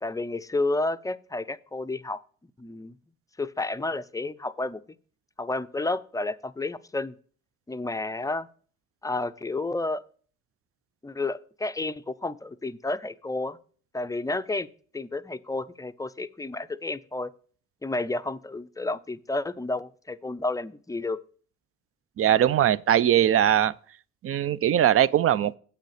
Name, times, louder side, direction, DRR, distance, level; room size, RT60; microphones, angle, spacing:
voice 1, 0.0-2.2 2.6-2.9 3.4-4.8 5.4-7.1 7.7-8.5 9.0-10.0 11.0-13.6 13.9-14.7 14.9-17.3 17.8-21.2, left 2 dB, 10° left, 0.5 m, -31 dB
voice 2, 22.2-23.7 24.2-25.6, right 10 dB, 50° right, 0.5 m, -21 dB
8.2 x 6.7 x 4.9 m
cardioid pair, 90°, 30 cm